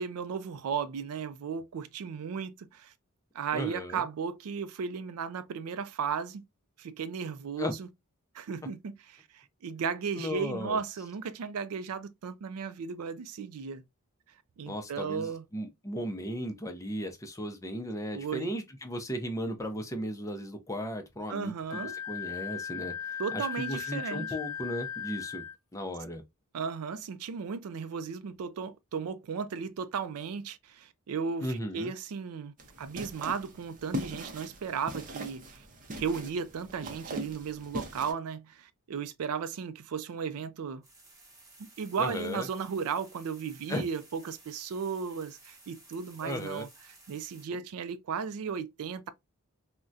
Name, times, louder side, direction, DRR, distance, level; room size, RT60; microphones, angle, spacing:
voice 1, 0.0-2.9 3.3-6.4 6.8-7.9 8.3-13.8 14.6-15.4 18.1-18.5 21.3-22.0 23.2-24.3 26.5-35.6 35.9-40.8 41.6-46.7 47.1-49.1, right 6 dB, 75° right, 0.4 m, -35 dB
voice 2, 3.5-4.0 7.6-7.7 10.2-10.8 14.7-25.4 25.7-26.2 31.4-31.9 42.0-42.5 43.7-43.8 46.2-46.7, equal, 15° left, 0.5 m, -36 dB
Wind instrument woodwind instrument, 21.7-25.6, left 8 dB, 65° left, 0.8 m, -37 dB
sound 1, 32.6-38.1, equal, 35° right, 0.6 m, -40 dB
sound 2, 40.8-47.5, right 2 dB, 15° right, 0.9 m, -56 dB
3.6 x 2.1 x 2.5 m
head